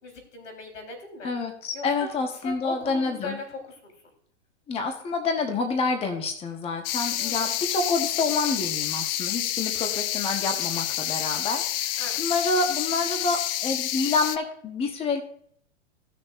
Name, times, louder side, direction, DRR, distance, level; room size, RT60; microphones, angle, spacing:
voice 1, 0.0-1.3 1.7-2.1 2.4-3.9 7.2-7.6 12.0-12.2, left 3 dB, 85° left, 3 dB, 4.0 m, -39 dB
voice 2, 1.2-3.4 4.7-15.2, left 3 dB, 15° left, 4 dB, 1.1 m, -28 dB
sound 1, 6.8-14.4, left 12 dB, 50° left, 0.6 m, -29 dB
16.5 x 6.5 x 2.5 m, 0.62 s
hypercardioid pair, 135°, 36 cm